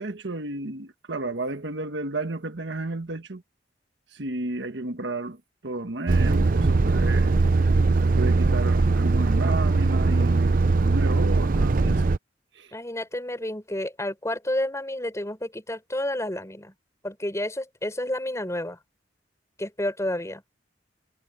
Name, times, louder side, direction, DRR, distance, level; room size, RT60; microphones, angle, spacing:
voice 1, 0.0-3.4 4.1-7.4 8.0-12.1 12.5-12.7, right 2 dB, 85° right, 1.4 m, -32 dB
Truck, 6.1-12.2, right 3 dB, 50° right, 0.6 m, -21 dB
voice 2, 12.7-16.7 17.0-18.8 19.6-20.4, left 1 dB, 15° left, 5.5 m, -30 dB
head